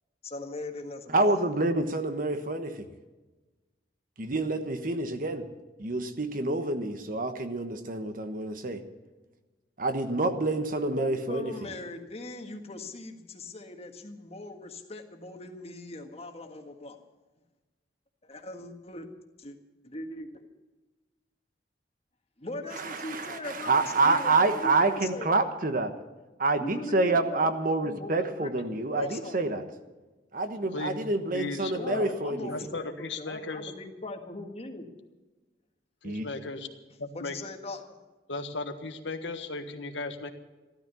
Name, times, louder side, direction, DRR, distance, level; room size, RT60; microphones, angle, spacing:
voice 1, 0.2-1.4 10.9-17.0 18.2-19.0 19.4-19.6 19.8-20.5 22.4-25.4 26.6-29.6 31.7-34.9 37.1-38.0, left 2 dB, 35° left, 4 dB, 1.7 m, -40 dB
voice 2, 1.1-2.7 4.2-5.4 5.8-8.8 9.8-11.5 22.8-25.9 26.4-29.6 30.3-32.5 36.0-36.3, right 2 dB, 50° right, 8 dB, 1.3 m, -27 dB
voice 3, 30.7-31.0 31.3-32.1 32.4-33.7 36.0-36.7 37.0-37.4 38.3-40.3, left 3 dB, 85° left, 7 dB, 1.5 m, -36 dB
14.5 x 13.0 x 7.0 m, 1.2 s
head